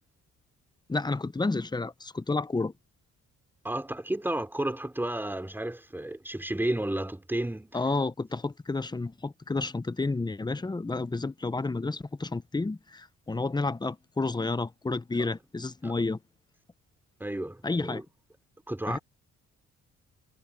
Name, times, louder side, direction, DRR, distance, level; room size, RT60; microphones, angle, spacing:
voice 1, 0.9-2.7 7.7-16.2 17.6-18.0 18.9-19.0, left 3 dB, 15° left, 0.9 m, -30 dB
voice 2, 3.6-7.7 15.2-15.3 15.8-15.9 17.2-18.0 18.7-19.0, right 1 dB, 5° right, 3.7 m, -32 dB
cardioid pair, 90°, 30 cm